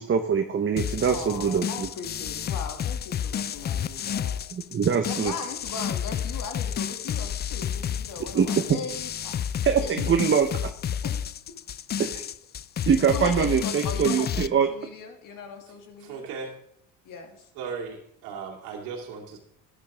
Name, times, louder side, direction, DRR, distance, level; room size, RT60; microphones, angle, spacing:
voice 1, 0.0-1.9 4.5-5.3 8.3-8.5 9.6-10.5 12.0-12.2 12.9-14.7, right 7 dB, 35° right, 5 dB, 1.1 m, -23 dB
sound 1, 0.8-14.5, left 9 dB, 30° left, 0.4 m, -31 dB
voice 2, 1.1-4.4 5.0-9.5 9.8-10.0 11.0-11.2 13.1-16.3 17.0-17.5, left 5 dB, 60° left, 4 dB, 2.5 m, -38 dB
voice 3, 16.0-16.5 17.6-19.4, right 5 dB, 85° right, -2 dB, 2.5 m, -36 dB
12.5 x 10.0 x 3.6 m, 0.72 s
supercardioid pair, 85°, 36 cm